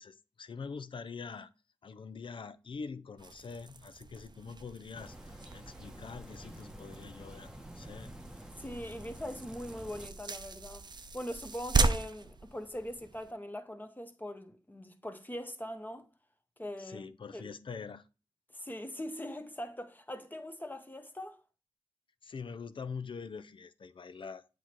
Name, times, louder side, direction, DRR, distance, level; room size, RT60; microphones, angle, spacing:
voice 1, 0.0-1.5 1.8-7.5 7.7-8.1 16.8-18.1 22.2-24.5, left 5 dB, 70° left, 0.5 m, -44 dB
sound 1, 3.2-13.3, right 3 dB, 55° right, 0.6 m, -37 dB
sound 2, 4.9-10.1, equal, 5° right, 0.9 m, -49 dB
voice 2, 8.6-10.9 11.1-16.1 16.6-17.1 17.3-17.4 18.5-21.4, equal, 20° left, 1.1 m, -41 dB
7.8 x 3.1 x 4.4 m
cardioid pair, 40°, 9 cm